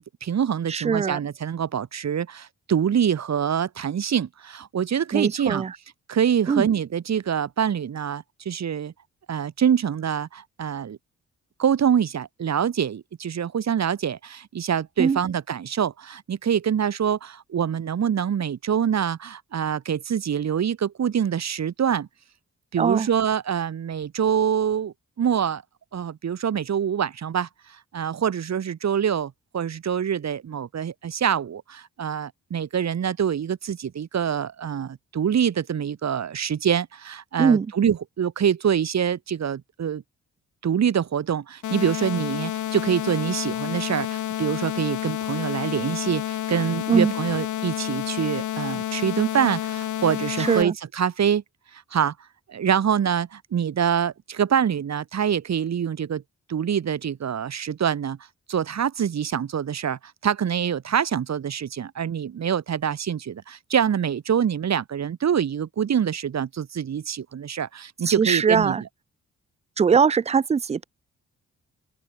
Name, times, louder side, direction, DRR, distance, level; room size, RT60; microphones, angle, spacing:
voice 1, 0.0-5.6 6.1-8.9 9.3-11.0 11.6-22.1 22.7-25.6 25.9-40.0 40.6-51.4 51.7-52.1 52.5-56.2 56.5-58.2 58.5-68.9, right 8 dB, 65° right, 2.7 m, -25 dB
voice 2, 0.7-1.2 5.1-5.7 6.5-6.7 15.0-15.2 22.8-23.1 37.4-37.7 46.9-47.1 50.4-50.7 68.1-68.8 69.8-70.8, right 6 dB, 20° right, 0.4 m, -21 dB
sound 1, 41.6-50.6, left 12 dB, 90° left, 1.8 m, -29 dB
open air
cardioid pair, 85°, 29 cm